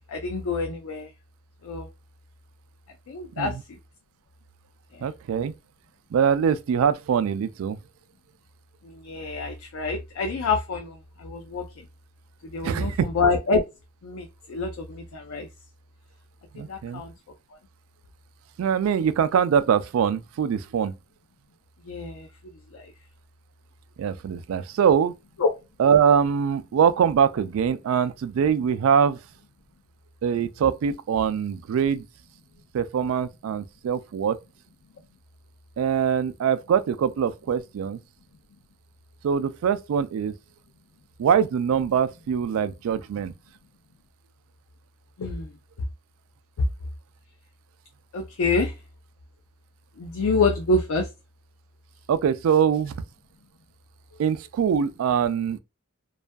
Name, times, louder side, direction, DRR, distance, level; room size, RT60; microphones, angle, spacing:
voice 1, 0.1-1.1 1.6-1.9 3.1-3.8 4.9-5.0 8.8-11.7 12.4-13.6 14.0-15.5 16.6-17.1 21.9-22.3 22.7-22.9 25.4-25.5 45.2-45.5 48.1-48.7 50.0-51.1, left 3 dB, 90° left, 0.4 m, -27 dB
voice 2, 5.0-5.5 6.1-7.8 12.6-13.1 16.6-17.0 18.6-20.9 24.0-25.1 25.8-29.2 30.2-32.0 32.7-34.4 35.8-38.0 39.2-40.3 41.2-43.3 52.1-52.9 54.2-55.6, right 7 dB, 80° right, 0.3 m, -23 dB
2.5 x 2.3 x 2.2 m
head